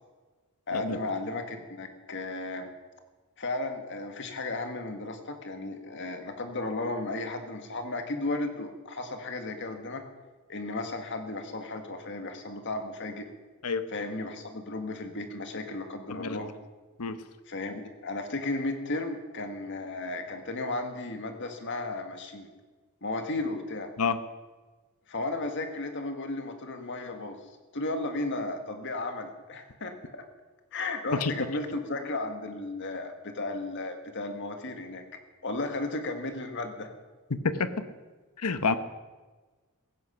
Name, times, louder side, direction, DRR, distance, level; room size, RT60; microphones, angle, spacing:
voice 1, 0.7-2.7 3.4-10.0 10.5-13.3 13.9-16.5 17.5-22.5 23.0-23.9 25.1-27.4 27.7-30.2 30.7-35.0 35.4-36.9, left 2 dB, 55° left, 6 dB, 1.9 m, -34 dB
voice 2, 16.1-16.5 17.0-17.2 24.0-24.2 31.1-31.3 37.3-37.7 38.4-38.7, left 4 dB, 90° left, 11 dB, 1.0 m, -28 dB
16.5 x 15.0 x 5.7 m, 1.3 s
head